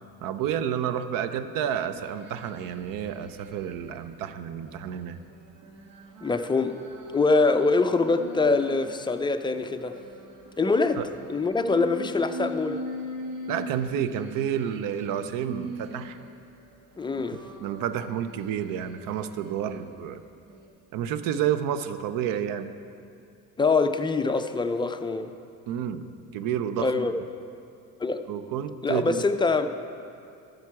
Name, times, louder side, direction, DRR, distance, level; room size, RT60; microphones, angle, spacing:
voice 1, 0.2-5.2 11.0-11.1 13.5-16.2 17.6-20.2 20.9-22.7 25.7-26.0 26.3-27.1 28.3-29.2, right 9 dB, 70° right, 11 dB, 0.6 m, -30 dB
sound 1, 1.9-4.0 4.5-9.0 9.4-16.4 16.9-19.9 20.4-20.7, right 1 dB, 85° right, 1.4 m, -42 dB
voice 2, 6.2-6.8 7.1-10.0 10.6-11.0 11.3-12.8 17.0-17.4 23.6-25.3 26.8-27.1 28.0-28.2 28.8-29.7, left 3 dB, 15° left, 7 dB, 0.4 m, -24 dB
13.0 x 6.6 x 4.7 m, 2.5 s
cardioid pair, 105°, 35 cm